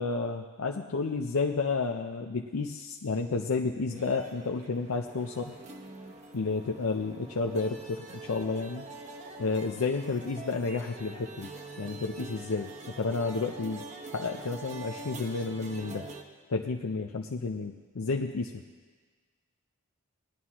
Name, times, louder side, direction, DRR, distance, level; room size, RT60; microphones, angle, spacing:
voice 1, 0.0-5.5 6.3-8.9 9.4-11.5 11.8-12.7 13.0-13.9 14.1-16.1 16.5-18.6, left 4 dB, 80° left, 2 dB, 0.6 m, -31 dB
sound 1, 3.9-16.2, right 3 dB, 30° right, 0.8 m, -45 dB
19.5 x 11.0 x 3.0 m, 1.4 s
head